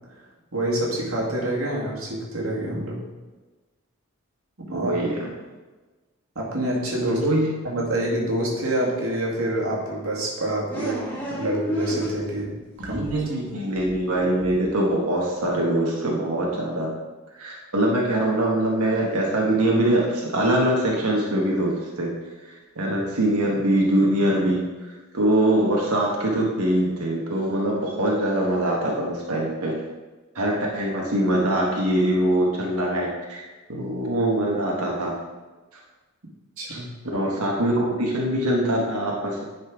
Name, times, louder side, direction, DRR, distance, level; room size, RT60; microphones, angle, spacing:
voice 1, 0.5-3.0 4.6-5.0 6.4-7.3 7.6-12.6 12.8-13.0 22.9-23.0 36.6-36.9, right 1 dB, 70° right, -3 dB, 2.0 m, -27 dB
voice 2, 4.7-5.3 7.1-7.5 12.8-16.9 17.3-22.1 22.4-24.7 25.1-29.7 30.3-33.4 33.7-35.1 36.7-36.8 37.1-39.4, right 1 dB, 90° right, -2 dB, 1.4 m, -23 dB
sound 1, 10.7-12.5 12.8-15.1, equal, 10° left, 1.6 m, -33 dB
9.9 x 4.4 x 4.7 m, 1.2 s
head